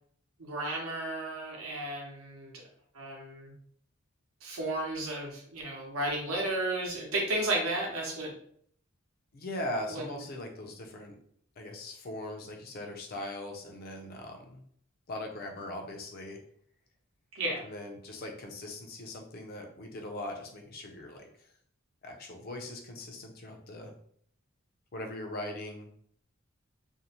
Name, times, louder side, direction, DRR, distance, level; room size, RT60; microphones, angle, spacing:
voice 1, 0.4-2.5 2.9-3.5 4.4-8.3 9.9-10.0 17.3-17.7, right 1 dB, 75° right, 0 dB, 0.8 m, -33 dB
voice 2, 9.3-11.2 11.6-14.6 15.1-16.4 17.6-21.5 22.0-23.9 24.9-25.9, left 1 dB, 45° left, 2 dB, 0.5 m, -40 dB
2.6 x 2.0 x 2.8 m, 0.63 s
head